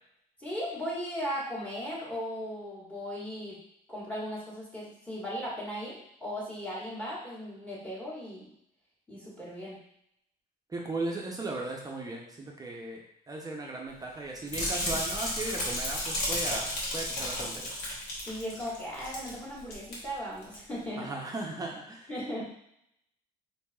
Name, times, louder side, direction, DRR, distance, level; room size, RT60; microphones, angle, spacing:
voice 1, 0.4-3.6 3.9-8.5 9.1-9.8 18.2-21.1 22.1-22.5, equal, 10° left, -7 dB, 1.5 m, -37 dB
voice 2, 10.7-17.7 21.0-22.1, right 2 dB, 20° right, -1 dB, 0.6 m, -37 dB
sound 1, 14.5-19.3 19.6-19.9 20.4-20.5, left 1 dB, 80° left, 1.2 m, -33 dB
4.5 x 2.7 x 2.3 m, 0.75 s
cardioid pair, 110°, 17 cm